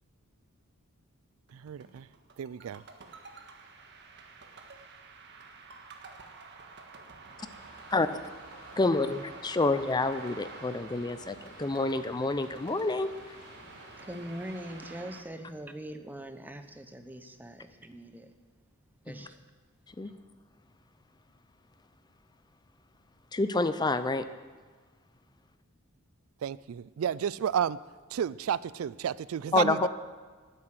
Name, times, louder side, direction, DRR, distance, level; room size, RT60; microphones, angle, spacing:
sound 1, 1.5-15.2, right 4 dB, 55° right, 1.5 m, -49 dB
voice 1, 1.6-2.0 2.4-2.8 26.4-27.8 28.1-29.9, right 8 dB, 75° right, 19 dB, 0.3 m, -31 dB
sound 2, 7.4-15.0, left 1 dB, 50° left, 5.0 m, -54 dB
voice 2, 7.9-8.3 8.8-13.1 19.1-19.2 20.0-20.1 23.3-24.3 29.5-29.9, left 3 dB, 20° left, 12 dB, 0.5 m, -28 dB
voice 3, 14.0-18.3 19.0-19.4, right 1 dB, 10° right, 7 dB, 0.8 m, -42 dB
12.5 x 9.7 x 7.8 m, 1.5 s
head